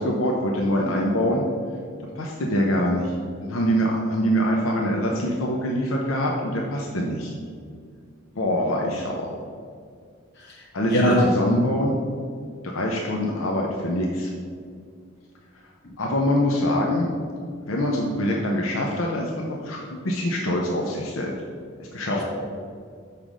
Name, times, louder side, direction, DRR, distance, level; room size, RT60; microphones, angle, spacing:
voice 1, 0.0-1.4 2.2-7.3 8.4-9.3 10.7-11.9 12.6-14.3 16.0-17.1 17.7-21.3 21.8-22.2, equal, 85° left, -1 dB, 0.8 m, -24 dB
voice 2, 10.4-11.2 22.1-22.2, equal, 55° left, -3 dB, 1.8 m, -23 dB
5.8 x 5.1 x 6.2 m, 2.1 s
head